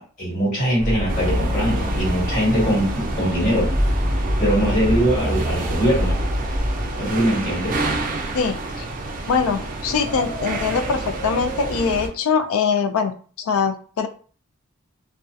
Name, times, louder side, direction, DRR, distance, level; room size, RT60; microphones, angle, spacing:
voice 1, 0.0-3.7 4.4-6.2 7.0-7.8, equal, 35° left, -7 dB, 1.4 m, -22 dB
sound 1, 0.8-6.8, equal, 5° left, 0.9 m, -25 dB
sound 2, 1.1-12.1, right 1 dB, 40° right, 0.4 m, -28 dB
voice 2, 8.3-8.9 9.3-14.1, left 5 dB, 85° left, 8 dB, 0.3 m, -23 dB
2.6 x 2.1 x 2.3 m, 0.42 s
head